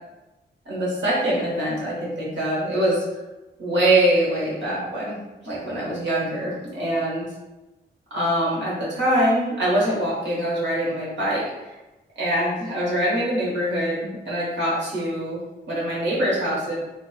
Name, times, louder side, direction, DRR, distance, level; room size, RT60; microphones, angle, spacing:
voice 1, 0.7-3.0 3.6-5.2 5.4-7.2 8.1-11.4 12.2-15.4 15.7-16.7, right 1 dB, 90° right, -6 dB, 1.0 m, -23 dB
2.7 x 2.1 x 2.2 m, 1.0 s
cardioid pair, 80°, 18 cm